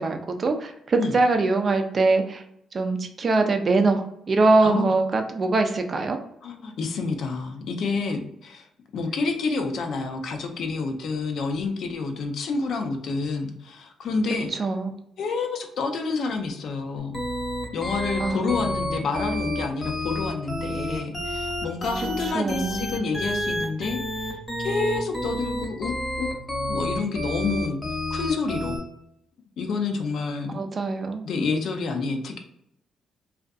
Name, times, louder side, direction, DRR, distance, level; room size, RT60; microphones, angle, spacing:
voice 1, 0.0-2.4 2.7-6.2 14.6-14.9 18.2-18.6 22.3-22.9 30.5-31.2, right 3 dB, 40° right, 6 dB, 0.4 m, -23 dB
voice 2, 4.6-4.9 6.4-8.7 8.9-14.5 15.2-17.2 17.7-24.4 24.6-27.8 28.1-28.8 29.6-30.6 31.2-32.4, left 4 dB, 65° left, 4 dB, 0.5 m, -28 dB
sound 1, 17.1-28.8, equal, 10° left, 0.9 m, -29 dB
2.5 x 2.4 x 2.3 m, 0.76 s
cardioid pair, 90°, 0 cm